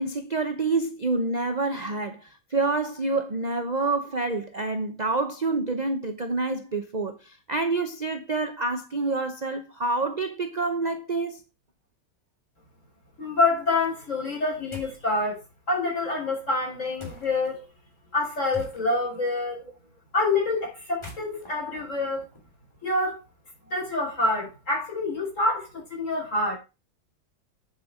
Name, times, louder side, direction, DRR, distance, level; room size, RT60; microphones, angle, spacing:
voice 1, 0.0-11.4, right 3 dB, 35° right, 0.6 m, -27 dB
voice 2, 13.2-15.4 15.7-17.6 18.1-19.6 20.1-22.2 22.8-23.2 23.7-26.6, left 2 dB, 40° left, 5.8 m, -26 dB
sound 1, 14.7-15.1 17.0-17.5 18.5-19.2 20.8-22.8, left 3 dB, 15° left, 2.9 m, -44 dB
8.6 x 8.0 x 5.0 m
omnidirectional pair, 2.0 m